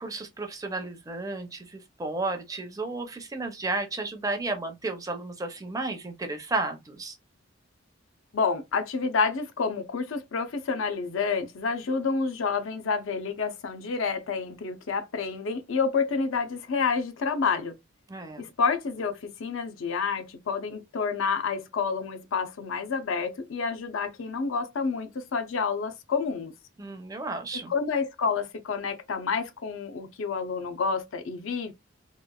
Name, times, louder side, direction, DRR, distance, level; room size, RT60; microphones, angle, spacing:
voice 1, 0.0-7.2 18.1-18.4 26.8-27.7, right 2 dB, 15° right, 0.4 m, -33 dB
voice 2, 8.3-17.7 18.4-26.5 27.7-31.7, left 5 dB, 80° left, 0.5 m, -29 dB
3.0 x 2.3 x 2.2 m
head